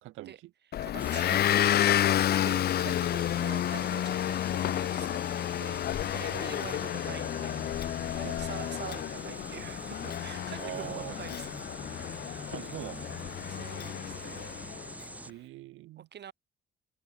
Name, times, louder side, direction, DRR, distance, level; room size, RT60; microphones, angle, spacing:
voice 1, 0.0-0.5 6.1-6.5 8.2-8.4 10.6-11.1 12.5-13.3 15.2-16.1, right 17 dB, 80° right, 0.5 m, -43 dB
Motor vehicle (road) / Engine, 0.7-14.9, left 12 dB, 55° left, 0.4 m, -30 dB
voice 2, 0.8-2.0 2.4-5.2 5.6-5.8 6.2-7.7 8.1-11.5 13.4-14.7 15.1-15.5 16.0-16.3, right 9 dB, 60° right, 3.4 m, -45 dB
sound 1, 1.0-15.3, right 2 dB, 10° right, 0.4 m, -45 dB
cardioid pair, 90°, 20 cm